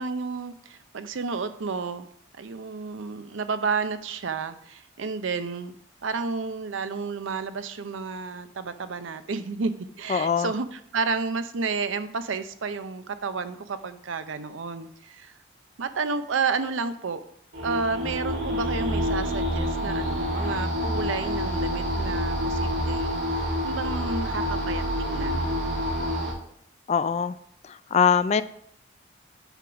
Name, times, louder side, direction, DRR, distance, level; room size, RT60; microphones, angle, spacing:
voice 1, 0.0-2.1 2.4-5.7 6.0-15.3 15.8-17.2 17.6-25.5, right 4 dB, 80° right, 11 dB, 0.6 m, -31 dB
voice 2, 10.1-10.5 26.9-27.4 27.6-28.4, left 7 dB, 35° left, 14 dB, 0.3 m, -22 dB
sound 1, 17.5-26.3, equal, 65° right, 2.3 m, -27 dB
8.1 x 3.9 x 5.7 m, 0.69 s
head